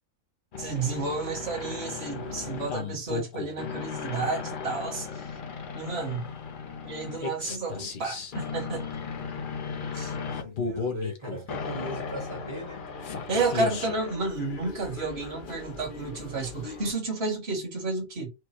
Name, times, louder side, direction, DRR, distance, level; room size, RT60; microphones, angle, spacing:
sound 1, 0.5-16.9, left 5 dB, 45° left, 0.8 m, -36 dB
voice 1, 0.6-5.3 5.7-6.3 6.8-8.9 9.9-10.1 13.3-18.3, right 3 dB, 45° right, 2.0 m, -31 dB
voice 2, 2.1-2.7 10.2-12.9, right 1 dB, 20° right, 1.3 m, -40 dB
4.7 x 2.2 x 4.4 m
omnidirectional pair, 1.5 m